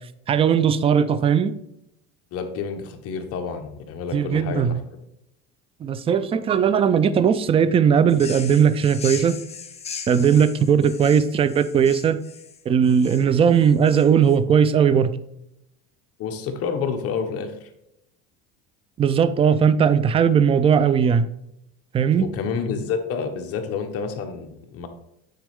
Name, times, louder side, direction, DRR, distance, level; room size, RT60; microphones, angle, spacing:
voice 1, 0.3-1.6 4.1-4.8 5.8-9.4 10.1-12.2 12.7-15.1 19.0-21.3 21.9-22.3, right 7 dB, 20° right, 13 dB, 0.3 m, -18 dB
voice 2, 2.3-4.8 16.2-17.7 22.1-24.9, left 5 dB, 50° left, 5 dB, 1.2 m, -29 dB
sound 1, 8.1-14.4, left 6 dB, 20° left, 0.7 m, -38 dB
9.2 x 4.2 x 3.6 m, 0.81 s
cardioid pair, 140°, 32 cm